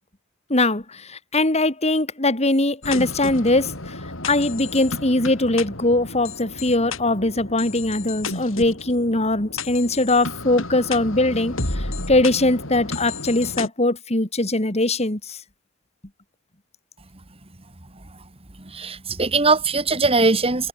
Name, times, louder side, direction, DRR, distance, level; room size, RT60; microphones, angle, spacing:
voice 1, 0.5-3.9 4.3-15.4, left 2 dB, 30° left, 2.9 m, -21 dB
sound 1, 2.8-13.7, left 3 dB, 75° left, 7.2 m, -32 dB
voice 2, 18.7-20.7, right 3 dB, 30° right, 2.6 m, -20 dB
head